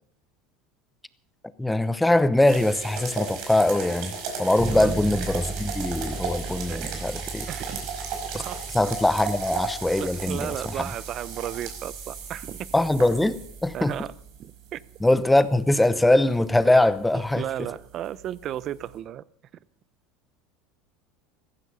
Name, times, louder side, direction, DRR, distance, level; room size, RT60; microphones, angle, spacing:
voice 1, 1.6-4.1 4.4-7.5 8.7-10.9 12.7-14.0 15.0-17.5, left 1 dB, 5° left, 0.8 m, -22 dB
sound 1, 2.5-18.9, right 5 dB, 65° right, 5.1 m, -37 dB
Bass guitar, 4.6-14.3, right 4 dB, 20° right, 0.9 m, -38 dB
voice 2, 6.6-7.0 7.5-7.8 8.3-8.6 10.0-12.7 13.7-14.1 14.4-14.8 17.1-19.2, right 11 dB, 45° right, 0.6 m, -34 dB
15.0 x 15.0 x 5.6 m
supercardioid pair, 110°, 0 cm